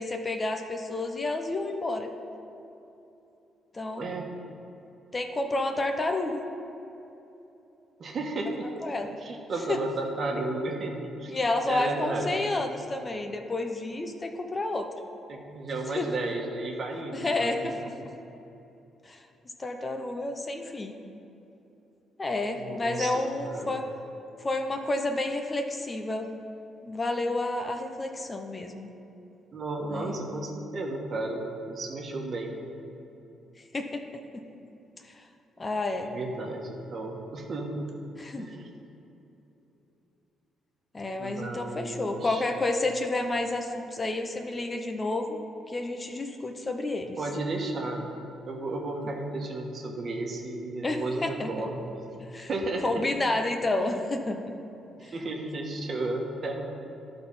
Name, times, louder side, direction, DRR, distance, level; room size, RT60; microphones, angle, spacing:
voice 1, 0.0-2.1 3.7-4.2 5.1-6.4 8.8-9.1 9.7-9.8 11.3-14.9 15.9-16.1 17.1-17.9 19.0-19.2 19.6-20.9 22.2-23.8 24.4-26.3 26.8-28.9 29.9-30.1 33.7-34.0 35.1-35.2 35.6-36.1 38.2-38.5 40.9-45.4 45.7-47.2 50.8-51.7 52.2-52.5 52.8-54.5, left 2 dB, 25° left, 5 dB, 0.7 m, -30 dB
voice 2, 8.0-8.7 9.2-11.4 11.7-12.3 15.3-17.9 22.5-23.1 23.4-23.8 29.5-32.5 36.1-37.9 38.4-38.7 41.2-42.4 47.2-48.1 48.5-51.9 52.3-53.1 53.8-54.0 55.0-56.6, right 2 dB, 50° right, 1 dB, 1.2 m, -33 dB
11.5 x 4.0 x 5.5 m, 2.9 s
cardioid pair, 90°, 0 cm